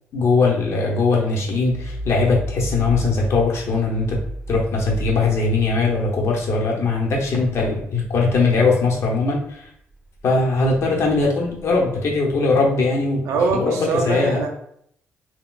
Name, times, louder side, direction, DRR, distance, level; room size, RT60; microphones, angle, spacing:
voice 1, 0.1-4.2 4.5-9.6 10.2-13.3 13.5-14.4, left 3 dB, 65° left, -1 dB, 0.9 m, -20 dB
sound 1, 1.3-9.5 9.9-12.5, equal, 20° right, 1.3 m, -36 dB
voice 2, 13.3-14.5, right 4 dB, 85° right, 2 dB, 0.6 m, -22 dB
3.8 x 2.2 x 2.4 m, 0.68 s
cardioid pair, 70°, 5 cm